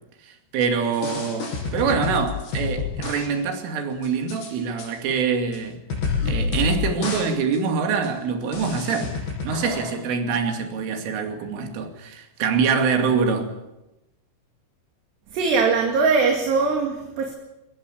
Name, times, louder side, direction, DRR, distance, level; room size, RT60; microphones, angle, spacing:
voice 1, 0.2-5.8 6.3-13.5, right 5 dB, 80° right, 5.0 m, -25 dB
sound 1, 0.9-3.3 3.5-3.6 4.0-4.5 4.8-4.9 5.5-5.6 5.9-6.8 7.0-7.3 7.5-7.6 8.0-8.1 8.5-10.0, left 4 dB, 60° left, 7.7 m, -28 dB
voice 2, 15.3-17.3, right 4 dB, 60° right, 4.3 m, -21 dB
23.0 x 18.5 x 8.6 m
omnidirectional pair, 5.7 m